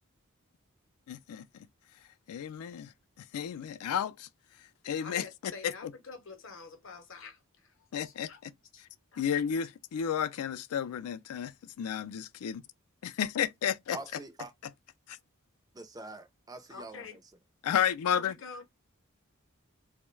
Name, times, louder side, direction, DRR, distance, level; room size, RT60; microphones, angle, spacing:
voice 1, 1.1-1.7 2.3-2.9 3.2-4.3 4.8-5.2 5.6-5.9 7.9-8.5 8.8-8.9 9.2-12.6 13.0-14.0 15.1-15.2 17.6-18.3, left 8 dB, 90° left, 0.3 m, -32 dB
voice 2, 5.0-7.7 8.0-8.4 8.7-8.9 9.1-9.2 16.7-17.2 18.0-18.6, left 5 dB, 60° left, 0.7 m, -47 dB
voice 3, 13.9-14.5 15.7-17.2, right 3 dB, 15° right, 0.3 m, -44 dB
2.2 x 2.1 x 3.0 m
head